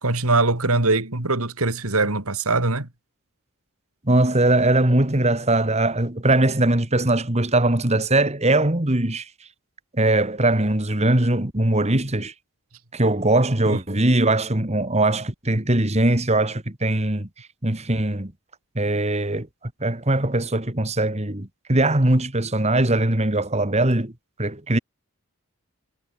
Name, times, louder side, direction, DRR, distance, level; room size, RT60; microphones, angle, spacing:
voice 1, 0.0-2.9 13.7-14.0, right 3 dB, 75° right, 3.1 m, -22 dB
voice 2, 4.1-9.3 9.9-12.3 12.9-18.3 18.8-19.5 19.8-24.1 24.4-24.8, right 2 dB, 30° right, 2.1 m, -21 dB
head